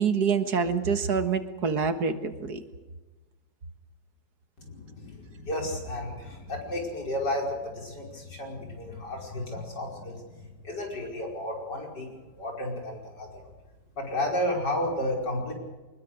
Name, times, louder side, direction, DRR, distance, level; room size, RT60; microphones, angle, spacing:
voice 1, 0.0-2.6, right 6 dB, 65° right, 9 dB, 2.0 m, -26 dB
voice 2, 4.6-13.4 14.0-15.5, left 1 dB, 80° left, 1 dB, 5.8 m, -32 dB
23.5 x 21.0 x 6.5 m, 1.2 s
omnidirectional pair, 1.8 m